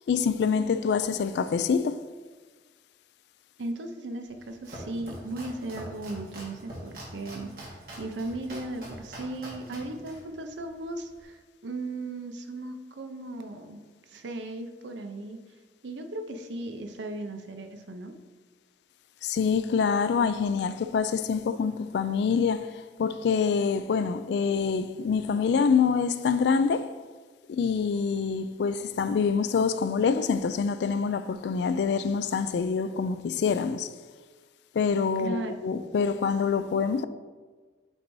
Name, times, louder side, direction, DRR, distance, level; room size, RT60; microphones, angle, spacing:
voice 1, 0.1-2.0 19.2-22.7 23.0-26.9 27.5-33.9 34.7-37.0, left 5 dB, 70° left, 0.3 m, -26 dB
voice 2, 3.6-13.8 14.1-15.4 15.8-18.1 35.2-35.8, right 2 dB, 85° right, 0.6 m, -37 dB
Domestic sounds home sounds, 4.3-11.2, right 1 dB, 55° right, 1.5 m, -44 dB
8.0 x 2.7 x 4.6 m
head